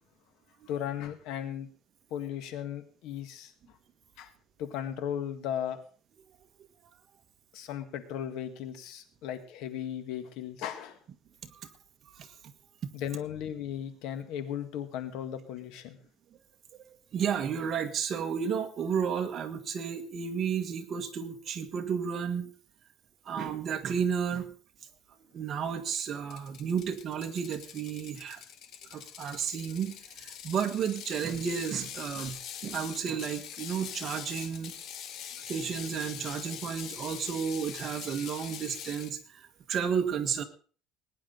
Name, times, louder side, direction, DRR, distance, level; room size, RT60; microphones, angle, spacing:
voice 1, 0.7-1.7 2.1-3.8 4.2-4.3 4.6-5.8 7.5-11.0 12.9-16.0, left 10 dB, 70° left, 9 dB, 1.9 m, -36 dB
voice 2, 17.1-22.5 23.2-24.5 25.3-28.4 28.9-29.9 30.2-34.7 35.5-40.4, right 7 dB, 40° right, 7 dB, 1.6 m, -32 dB
Ratchet pawl, 25.9-39.1, left 9 dB, 55° left, 1.3 m, -43 dB
20.5 x 10.0 x 4.0 m, 0.41 s
cardioid pair, 140°, 0 cm